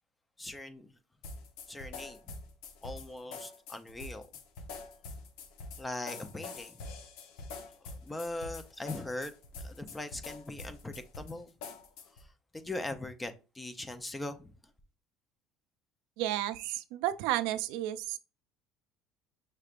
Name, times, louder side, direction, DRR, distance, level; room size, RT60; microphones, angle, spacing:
voice 1, 0.4-0.9 1.7-2.2 2.8-4.3 5.8-6.7 7.8-9.3 9.6-11.5 12.5-14.5, left 2 dB, 10° left, 0.5 m, -40 dB
sound 1, 1.2-12.3, left 3 dB, 80° left, 0.8 m, -45 dB
voice 2, 16.2-18.2, right 13 dB, 80° right, 0.4 m, -32 dB
5.7 x 3.2 x 2.4 m
cardioid pair, 145°, 0 cm